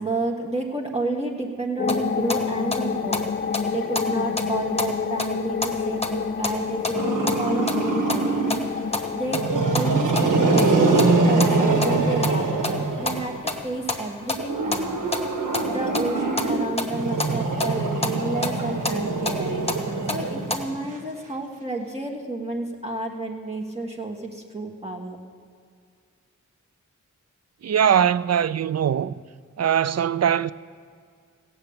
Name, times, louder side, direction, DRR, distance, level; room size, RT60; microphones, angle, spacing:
voice 1, 0.0-3.2 3.7-8.4 9.1-15.0 15.7-19.6 20.1-25.2, right 2 dB, 20° right, 1.5 m, -31 dB
sound 1, 1.8-12.9, left 5 dB, 35° left, 0.4 m, -29 dB
sound 2, 1.9-20.6, left 2 dB, 20° left, 1.2 m, -32 dB
Growling, 6.9-8.7 9.2-13.4 14.4-20.9, right 3 dB, 80° right, 1.9 m, -23 dB
voice 2, 27.6-29.2 29.6-30.5, right 9 dB, 55° right, 0.4 m, -21 dB
16.0 x 6.8 x 8.7 m
wide cardioid pair, 115°, 31 cm